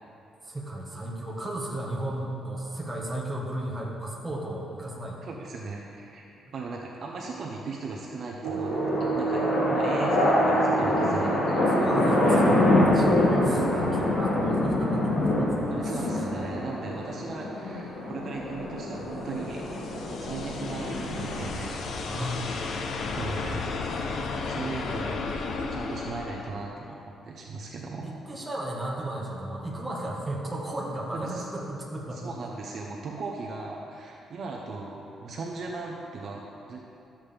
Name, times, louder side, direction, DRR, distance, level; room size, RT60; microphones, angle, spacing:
voice 1, 0.4-5.2 11.5-16.0 22.1-22.5 24.4-24.8 28.0-32.3, right 1 dB, 15° right, -4 dB, 1.4 m, -34 dB
voice 2, 5.2-6.3 6.5-9.4 9.7-11.7 15.7-19.6 20.2-21.8 23.0-23.7 24.4-25.2 25.7-27.0 27.2-28.1 31.1-31.4 32.1-36.8, right 3 dB, 45° right, -2 dB, 0.9 m, -37 dB
sound 1, 8.4-21.4, left 1 dB, 80° left, 2.2 m, -25 dB
sound 2, 8.4-13.9, right 6 dB, 85° right, 0.6 m, -33 dB
sound 3, 18.3-26.5, left 4 dB, 55° left, 0.7 m, -34 dB
13.0 x 7.4 x 3.4 m, 2.8 s
cardioid pair, 165°, 0 cm